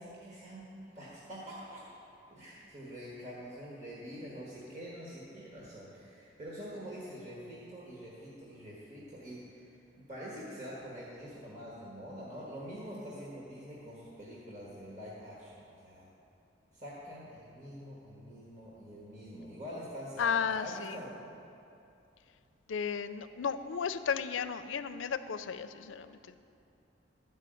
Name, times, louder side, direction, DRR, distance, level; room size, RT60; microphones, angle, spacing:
voice 1, 0.0-1.8 2.3-16.1 16.7-21.3, equal, 40° right, -6 dB, 1.6 m, -45 dB
voice 2, 20.2-21.0 22.7-26.4, left 6 dB, 85° left, 12 dB, 0.4 m, -34 dB
12.0 x 5.5 x 7.7 m, 2.6 s
head